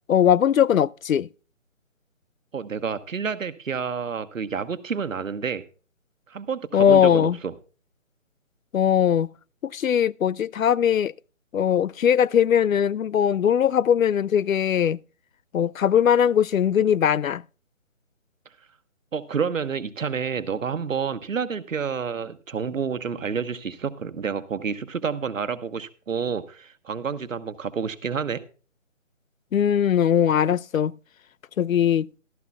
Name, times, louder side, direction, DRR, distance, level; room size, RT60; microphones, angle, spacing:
voice 1, 0.1-1.3 6.7-7.4 8.7-9.3 9.6-11.1 11.5-15.0 15.5-17.4 29.5-30.9 31.6-32.1, left 9 dB, 90° left, 0.6 m, -20 dB
voice 2, 2.5-5.6 6.3-7.5 19.1-28.4, right 6 dB, 75° right, 1.2 m, -29 dB
15.5 x 13.5 x 2.3 m
hypercardioid pair, 170°, 39 cm